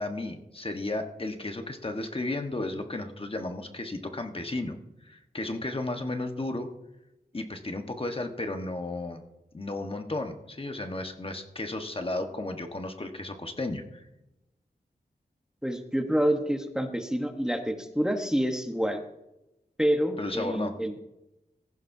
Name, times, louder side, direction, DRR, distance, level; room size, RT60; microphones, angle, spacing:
voice 1, 0.0-4.8 5.0-6.7 7.3-9.2 9.5-14.0 20.2-20.7, left 2 dB, 35° left, 5 dB, 1.3 m, -34 dB
voice 2, 15.6-19.0 19.8-20.9, equal, 5° right, 5 dB, 1.2 m, -27 dB
18.0 x 15.0 x 2.7 m, 0.93 s
wide cardioid pair, 75°, 17 cm